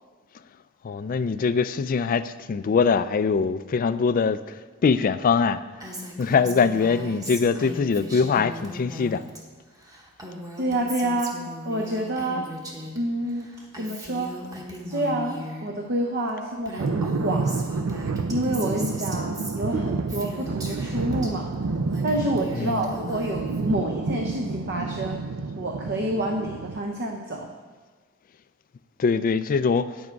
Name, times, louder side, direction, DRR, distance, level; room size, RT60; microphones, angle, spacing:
voice 1, 0.8-4.6 4.8-5.6 6.2-9.2 22.5-22.9 29.0-29.9, left 5 dB, 40° left, 13 dB, 0.3 m, -22 dB
Female speech woman speaking, 5.8-9.4 9.7-13.0 13.3-15.7 16.3-16.4 16.6-21.3 21.7-23.7, equal, 15° right, 1.2 m, -38 dB
voice 2, 10.6-12.5 12.9-14.3 14.9-17.6 18.3-21.5 22.0-25.2 25.6-27.5, right 1 dB, 50° right, 1 dB, 0.8 m, -28 dB
sound 1, 16.8-26.8, right 3 dB, 75° right, 0.5 m, -29 dB
9.5 x 7.3 x 4.6 m, 1.4 s
head